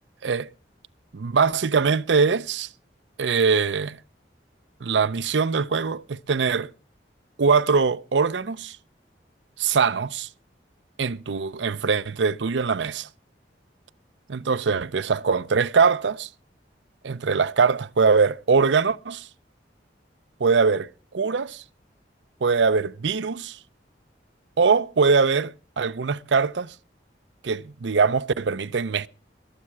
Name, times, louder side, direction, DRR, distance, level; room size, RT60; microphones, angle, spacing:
voice 1, 1.1-2.7 3.2-4.0 4.8-6.7 7.4-8.8 9.6-10.3 11.0-13.1 14.3-16.3 17.0-19.3 20.4-21.6 22.4-23.6 24.6-26.7 27.4-29.1, right 5 dB, 85° right, 0.6 m, -22 dB
22.0 x 7.5 x 4.7 m
head